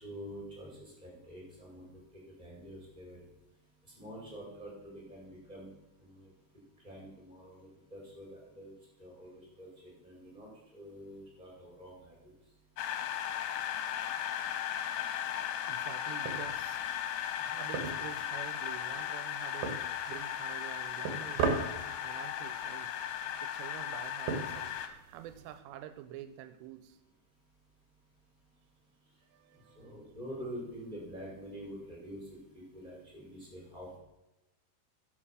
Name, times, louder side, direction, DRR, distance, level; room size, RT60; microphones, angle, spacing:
voice 1, 0.0-3.2 4.0-5.7 6.0-6.3 6.8-8.7 9.0-12.3 29.8-32.2 32.5-34.0, equal, 10° right, -3 dB, 4.4 m, -47 dB
sound 1, 12.8-24.9, left 10 dB, 80° left, 2.8 m, -36 dB
voice 2, 15.7-16.8 17.3-22.9 23.4-27.0 29.3-30.1, right 11 dB, 85° right, 11 dB, 2.7 m, -48 dB
sound 2, 16.2-25.6, right 5 dB, 65° right, 2.6 m, -40 dB
11.0 x 6.1 x 6.1 m, 0.94 s
omnidirectional pair, 4.9 m